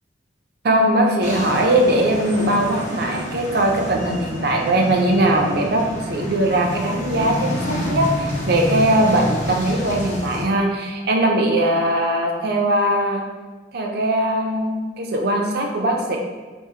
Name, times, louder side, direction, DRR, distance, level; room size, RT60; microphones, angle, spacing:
voice 1, 0.6-13.2 13.7-16.2, right 1 dB, 60° right, 1 dB, 0.5 m, -20 dB
sound 1, 1.2-10.4, left 1 dB, 45° left, 0.8 m, -28 dB
3.5 x 2.1 x 4.2 m, 1.4 s
head